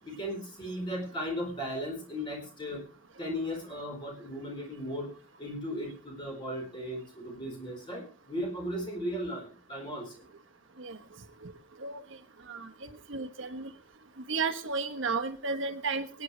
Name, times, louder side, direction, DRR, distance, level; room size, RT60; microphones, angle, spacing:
voice 1, 0.0-2.8 3.2-5.1 5.4-10.1, equal, 25° left, 0 dB, 4.5 m, -36 dB
voice 2, 12.5-13.7 14.3-16.2, right 4 dB, 70° right, 8 dB, 1.2 m, -33 dB
23.0 x 9.4 x 3.3 m, 0.36 s
head